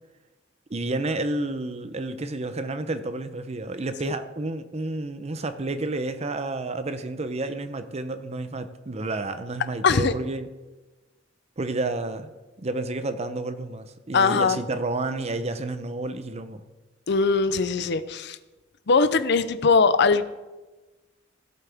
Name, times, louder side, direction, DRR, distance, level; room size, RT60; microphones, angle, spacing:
voice 1, 0.7-10.5 11.6-12.3 12.6-16.6, right 2 dB, 35° right, 10 dB, 0.7 m, -30 dB
voice 2, 9.8-10.1 14.1-14.6 17.1-18.4 18.9-20.2, left 4 dB, 60° left, 13 dB, 0.6 m, -20 dB
16.0 x 8.1 x 3.5 m, 1.2 s
head